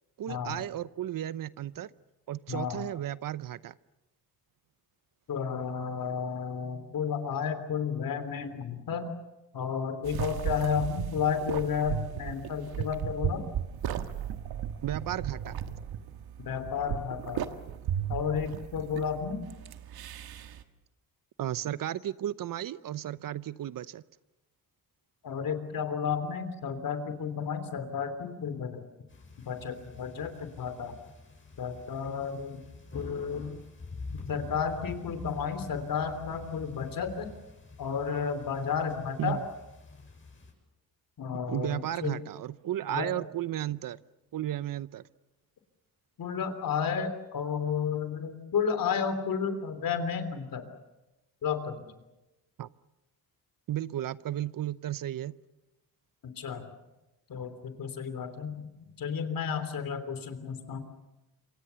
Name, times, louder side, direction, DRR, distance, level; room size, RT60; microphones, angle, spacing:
voice 1, 0.2-1.9 2.3-3.8 14.8-15.6 21.4-24.0 39.2-39.4 41.5-44.0 44.3-45.0 52.6-52.7 53.7-55.4, right 12 dB, 60° right, 17 dB, 0.8 m, -34 dB
voice 2, 2.5-2.8 5.3-9.1 9.5-13.5 16.4-17.4 18.1-19.5 25.2-28.8 29.4-30.9 31.6-32.6 32.9-33.6 34.1-37.3 37.8-39.4 41.2-42.1 42.9-43.1 46.2-50.6 51.4-51.9 56.4-56.6 57.3-60.8, left 6 dB, 65° left, 10 dB, 3.3 m, -32 dB
sound 1, 10.0-20.6, right 9 dB, 80° right, 1.6 m, -36 dB
sound 2, 29.1-40.5, left 3 dB, 35° left, 7.8 m, -47 dB
27.0 x 24.0 x 7.0 m, 1.0 s
cardioid pair, 90°, 37 cm